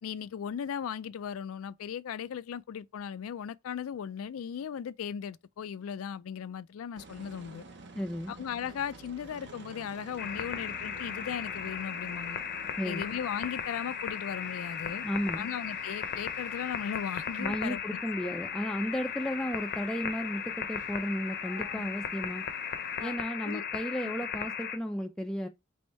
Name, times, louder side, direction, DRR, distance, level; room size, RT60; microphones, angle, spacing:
voice 1, 0.0-7.6 8.3-12.4 12.8-15.1 15.4-18.3 21.4-21.9 23.0-23.2 23.4-23.6 24.0-24.1, left 8 dB, 85° left, 0.3 m, -37 dB
sound 1, 7.0-23.1, right 3 dB, 60° right, 0.8 m, -52 dB
voice 2, 8.0-8.3 12.8-13.1 15.0-15.4 17.4-22.4 23.0-25.5, equal, 5° left, 0.3 m, -34 dB
sound 2, 10.2-24.8, left 7 dB, 50° left, 0.6 m, -36 dB
3.5 x 3.4 x 4.1 m
head